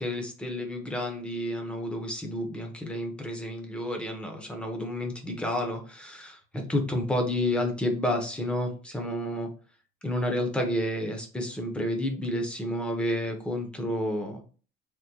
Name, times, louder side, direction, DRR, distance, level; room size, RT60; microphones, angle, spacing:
voice 1, 0.0-9.5 10.0-14.4, left 1 dB, 5° left, 3 dB, 0.6 m, -30 dB
3.5 x 2.2 x 2.8 m, 0.38 s
cardioid pair, 160°, 17 cm